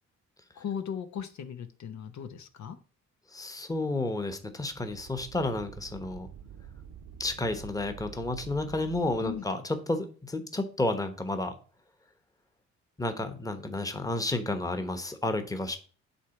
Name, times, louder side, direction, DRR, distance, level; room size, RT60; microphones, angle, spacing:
voice 1, 0.6-2.8 9.2-9.4, left 8 dB, 65° left, 8 dB, 0.9 m, -37 dB
voice 2, 3.3-6.3 7.2-11.6 13.0-15.8, left 2 dB, 10° left, 7 dB, 1.1 m, -31 dB
sound 1, 4.6-9.4, right 8 dB, 80° right, 0.9 m, -48 dB
8.3 x 3.4 x 5.8 m, 0.39 s
cardioid pair, 90°, 30 cm